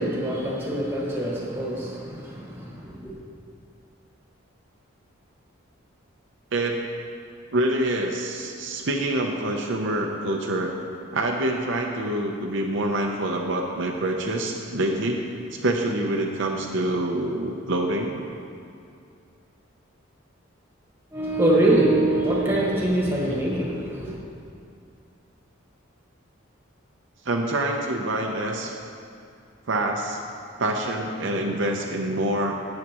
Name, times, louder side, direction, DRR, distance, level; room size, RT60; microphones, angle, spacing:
voice 1, 0.0-3.2 21.1-24.2, right 1 dB, 10° right, -4 dB, 1.6 m, -24 dB
voice 2, 7.5-10.7 11.1-15.2 15.5-18.2 23.3-23.4 27.2-28.7 29.7-30.2 30.6-32.6, right 1 dB, 65° right, 1 dB, 0.7 m, -26 dB
12.5 x 8.5 x 3.0 m, 2.4 s
head